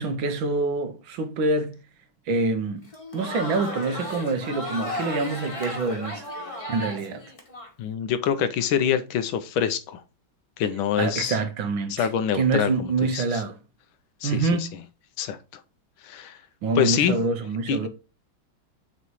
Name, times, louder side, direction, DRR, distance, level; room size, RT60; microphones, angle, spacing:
voice 1, 0.0-1.8 2.3-6.3 6.7-7.2 11.0-12.1 12.3-13.6 14.2-14.8 16.6-17.9, right 3 dB, 70° right, 1.6 m, -26 dB
Crowd, 2.8-7.7, left 1 dB, 20° left, 1.1 m, -34 dB
voice 2, 7.8-10.0 10.6-11.4 11.9-13.2 14.2-14.7 15.2-15.4 16.0-16.4 16.8-17.2 17.7-17.9, left 8 dB, 75° left, 1.5 m, -25 dB
6.9 x 3.1 x 4.7 m
omnidirectional pair, 2.3 m